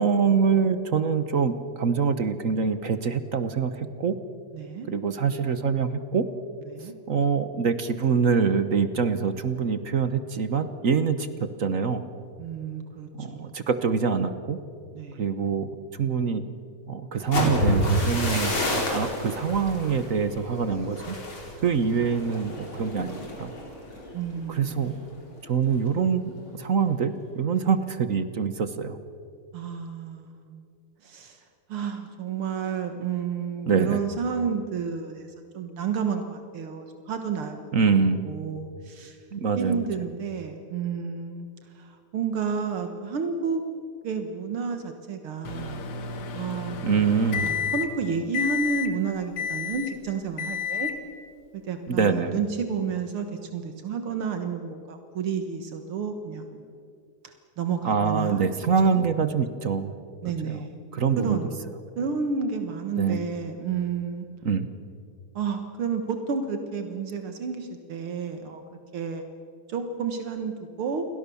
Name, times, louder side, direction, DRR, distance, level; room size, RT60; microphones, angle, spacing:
voice 1, 0.0-4.1 4.9-6.3 7.1-12.0 13.2-14.6 15.2-16.4 16.9-18.5 18.9-21.2 21.6-23.5 24.5-25.0 25.4-29.0 33.7-34.0 37.7-38.2 39.3-39.8 46.8-47.5 51.9-52.4 57.8-59.9 60.2-60.6 60.9-61.4 63.0-63.2 64.4-64.7, right 6 dB, 45° right, 11 dB, 1.1 m, -25 dB
voice 2, 4.5-4.9 6.7-7.0 12.4-13.6 15.0-15.3 24.1-25.1 27.5-27.8 29.5-30.6 31.0-31.4 31.7-37.7 38.2-39.2 39.6-41.5 41.7-43.6 44.0-45.8 46.3-50.9 51.6-56.6 57.2-58.5 58.8-59.0 60.2-60.7 61.2-61.5 62.0-64.3 65.4-68.6 68.9-69.2 69.7-71.1, right 6 dB, 75° right, 6 dB, 2.3 m, -31 dB
sound 1, 17.2-25.0 25.4-25.7 26.1-26.5, equal, 65° left, 5.5 m, -29 dB
Microwave oven, 45.4-48.0 48.3-48.9 49.4-50.0 50.4-51.0, left 6 dB, 90° left, 2.6 m, -30 dB
29.5 x 22.5 x 7.0 m, 2.4 s
omnidirectional pair, 2.4 m